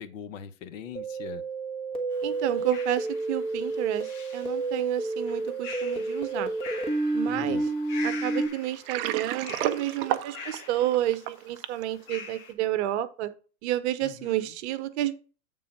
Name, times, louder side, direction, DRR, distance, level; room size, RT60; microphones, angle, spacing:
voice 1, 0.0-1.4 7.3-7.7 14.0-14.5, left 8 dB, 60° left, 1.0 m, -41 dB
sound 1, 1.0-8.5, right 3 dB, 10° left, 1.4 m, -30 dB
sound 2, 2.1-12.5, left 5 dB, 45° left, 2.0 m, -45 dB
voice 2, 2.2-6.5 7.1-7.6 8.0-13.3 13.6-15.1, right 13 dB, 50° right, 0.9 m, -30 dB
Water, 8.7-11.8, right 12 dB, 25° right, 0.4 m, -31 dB
8.4 x 3.9 x 5.2 m
hypercardioid pair, 120°, 44 cm